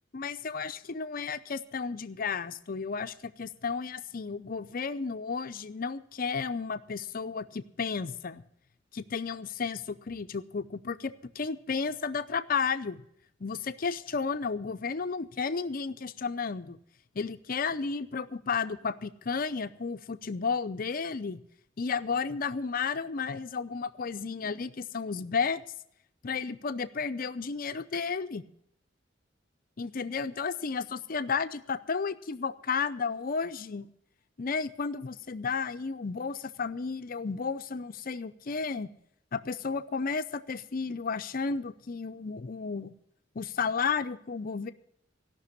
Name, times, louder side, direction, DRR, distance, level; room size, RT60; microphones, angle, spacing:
voice 1, 0.1-8.4 8.9-13.0 13.4-16.8 17.1-21.4 21.8-25.6 26.2-28.4 29.8-33.9 34.4-38.9 39.3-42.9 43.4-44.7, left 5 dB, 50° left, 12 dB, 0.6 m, -33 dB
16.0 x 6.0 x 9.6 m, 0.71 s
head